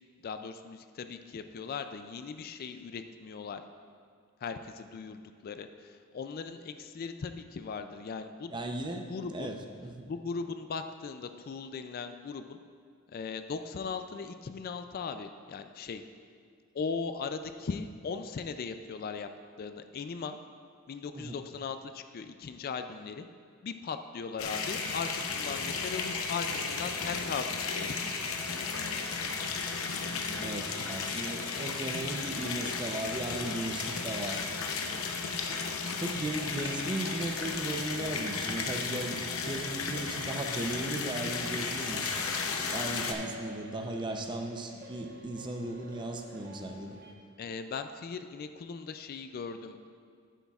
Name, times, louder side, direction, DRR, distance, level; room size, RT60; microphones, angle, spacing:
voice 1, 0.2-3.6 4.4-8.5 9.0-9.5 10.1-12.6 13.1-16.0 16.7-19.3 19.6-20.4 20.9-23.3 23.6-28.1 47.4-49.9, left 5 dB, 45° left, 9 dB, 0.3 m, -38 dB
voice 2, 8.5-10.1 21.1-21.4 30.4-34.4 36.0-42.1 42.6-47.0, right 1 dB, 20° right, 4 dB, 0.6 m, -36 dB
sound 1, 24.4-43.1, left 4 dB, 80° left, 0.7 m, -34 dB
sound 2, 41.8-47.1, right 1 dB, 45° right, 1.2 m, -50 dB
11.0 x 9.1 x 2.4 m, 2.2 s
head